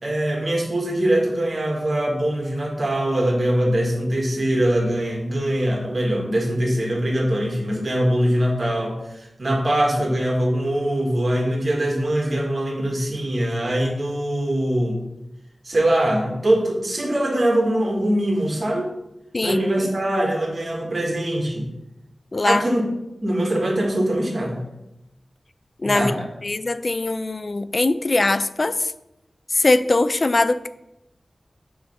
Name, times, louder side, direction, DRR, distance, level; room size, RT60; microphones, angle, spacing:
voice 1, 0.0-15.0 15.6-18.9 19.4-21.7 22.4-22.8 23.2-24.6 25.8-26.3, right 1 dB, 55° right, 0 dB, 1.8 m, -22 dB
voice 2, 22.3-22.6 25.8-26.1 26.4-28.9 29.5-30.7, left 2 dB, 50° left, 13 dB, 0.3 m, -21 dB
7.0 x 3.2 x 5.5 m, 0.88 s
wide cardioid pair, 60°, 0 cm